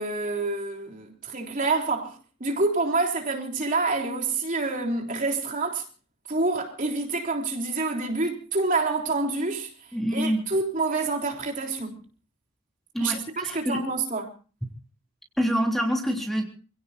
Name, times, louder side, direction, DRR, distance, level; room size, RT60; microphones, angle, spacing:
voice 1, 0.0-5.8 6.3-9.7 10.1-12.0 13.0-14.3, right 3 dB, 35° right, 3.6 m, -27 dB
voice 2, 9.9-10.4 12.9-13.8 15.4-16.4, equal, ahead, 3.4 m, -26 dB
28.0 x 17.5 x 2.6 m
head